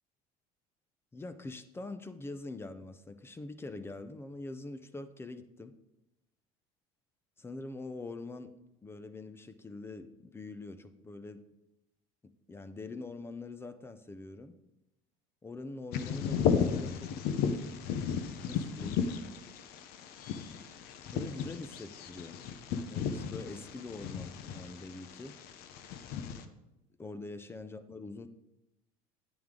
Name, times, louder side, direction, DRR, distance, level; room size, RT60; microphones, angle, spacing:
voice 1, 1.1-5.7 7.4-8.5 8.8-11.4 12.5-14.6 15.4-17.1 18.5-19.0 21.1-22.4 22.8-25.3 27.0-28.3, left 2 dB, 15° left, 11 dB, 0.6 m, -44 dB
Bird vocalization bird call bird song, 15.9-26.4, left 7 dB, 60° left, 0.9 m, -34 dB
9.4 x 8.8 x 3.8 m, 0.92 s
cardioid pair, 135°, 18 cm